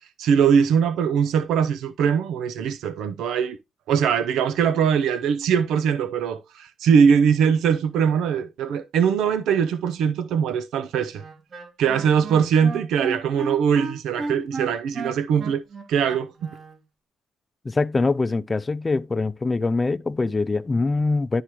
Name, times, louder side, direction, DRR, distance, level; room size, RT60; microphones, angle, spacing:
voice 1, 0.2-3.6 3.9-11.2 11.8-15.6 15.9-16.3, right 7 dB, 85° right, 0.6 m, -21 dB
Wind instrument woodwind instrument, 11.2-16.8, right 3 dB, 50° right, 2.6 m, -34 dB
voice 2, 17.6-21.4, left 3 dB, 25° left, 0.5 m, -23 dB
11.5 x 4.8 x 3.0 m
cardioid pair, 90°, 0 cm